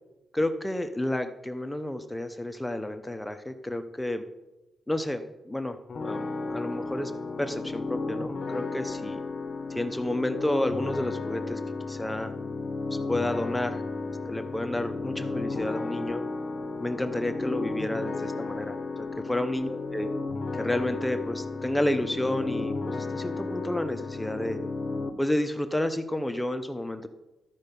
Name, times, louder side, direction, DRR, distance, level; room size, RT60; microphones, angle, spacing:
voice 1, 0.3-4.2 4.9-7.1 7.4-9.2 9.7-11.6 11.9-12.3 13.1-13.8 14.3-16.2 16.8-20.1 20.5-24.6 25.2-27.1, left 1 dB, 10° left, 8 dB, 0.7 m, -30 dB
sound 1, 5.9-25.1, left 3 dB, 50° left, 1.0 m, -33 dB
12.5 x 5.5 x 5.3 m, 1.0 s
cardioid pair, 80°, 0 cm